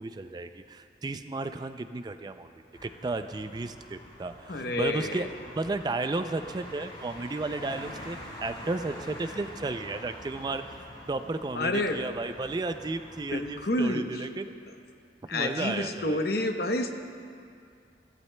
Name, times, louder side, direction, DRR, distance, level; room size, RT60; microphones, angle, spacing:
voice 1, 0.0-2.5 2.8-10.8 11.1-14.5 15.3-16.2, right 3 dB, 25° right, 9 dB, 0.3 m, -33 dB
sound 1, 2.7-13.9, left 1 dB, 30° left, 3.7 m, -45 dB
voice 2, 4.5-5.3 11.5-12.0 13.3-14.3 15.3-16.9, left 1 dB, 55° left, 5 dB, 0.9 m, -29 dB
24.0 x 15.0 x 2.2 m, 2.3 s
head